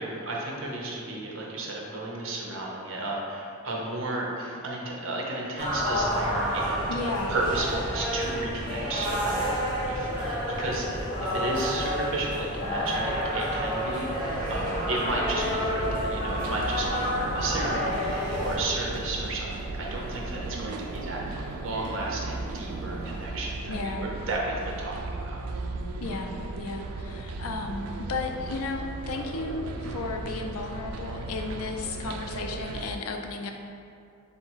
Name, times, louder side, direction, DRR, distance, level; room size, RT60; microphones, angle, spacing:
voice 1, 0.0-10.9 11.2-25.0 25.2-25.4, right 2 dB, 65° right, -2 dB, 0.7 m, -33 dB
sound 1, 5.6-18.6, equal, 20° left, 1.3 m, -29 dB
voice 2, 6.9-7.4 23.7-24.0 26.0-33.5, left 3 dB, 85° left, 3 dB, 0.4 m, -34 dB
sound 2, 8.7-23.5, left 1 dB, 40° left, 0.7 m, -46 dB
sound 3, 14.2-33.0, right 3 dB, 85° right, 0.3 m, -36 dB
3.9 x 2.7 x 4.5 m, 2.5 s
head